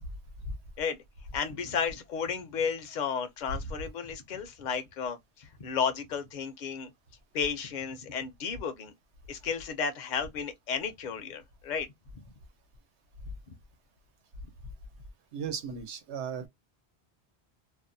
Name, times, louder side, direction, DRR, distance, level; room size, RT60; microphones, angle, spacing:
voice 1, 1.3-6.9 7.3-8.9 9.3-11.9 12.1-12.2, left 6 dB, 55° left, 0.6 m, -33 dB
voice 2, 15.3-16.5, right 4 dB, 80° right, 1.0 m, -36 dB
2.6 x 2.1 x 2.6 m
omnidirectional pair, 1.1 m